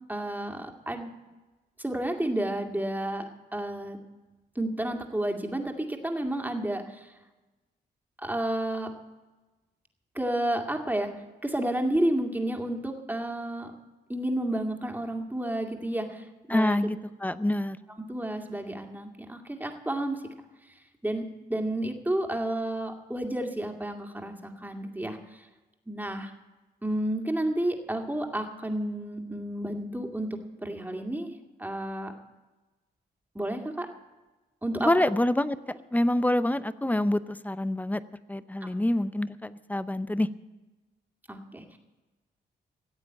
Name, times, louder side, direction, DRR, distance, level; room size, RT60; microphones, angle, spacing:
voice 1, 0.1-1.1 1.8-3.3 3.5-4.0 4.6-7.1 8.2-8.9 10.2-11.1 11.4-13.7 14.1-16.8 18.1-20.2 21.0-21.2 21.5-25.5 25.9-26.3 26.8-31.3 31.6-32.1 33.3-33.9 34.6-34.9 38.6-38.7 41.3-41.8, right 1 dB, 10° right, 3 dB, 2.3 m, -31 dB
voice 2, 16.5-17.8 34.8-38.0 38.3-40.3, left 1 dB, 10° left, 14 dB, 0.7 m, -26 dB
15.5 x 8.1 x 8.6 m, 1.1 s
cardioid pair, 65°, 19 cm